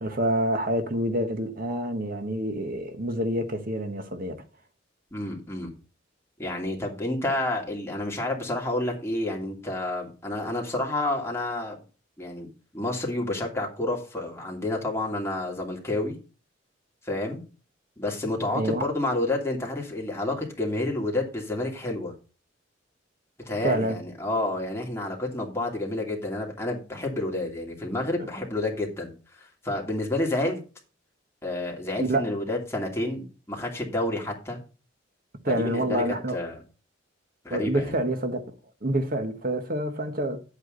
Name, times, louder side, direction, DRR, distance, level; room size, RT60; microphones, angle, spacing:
voice 1, 0.0-4.4 18.5-18.9 23.6-24.0 32.0-32.3 35.4-36.4 37.5-38.4 38.8-40.4, right 1 dB, 50° right, 1.4 m, -27 dB
voice 2, 5.1-5.7 6.4-11.8 12.2-16.2 17.0-17.4 18.0-22.1 23.5-30.6 31.4-34.6 35.5-36.0 36.3-36.6 37.4-38.0, left 2 dB, 15° left, 2.8 m, -29 dB
10.0 x 8.4 x 4.0 m
head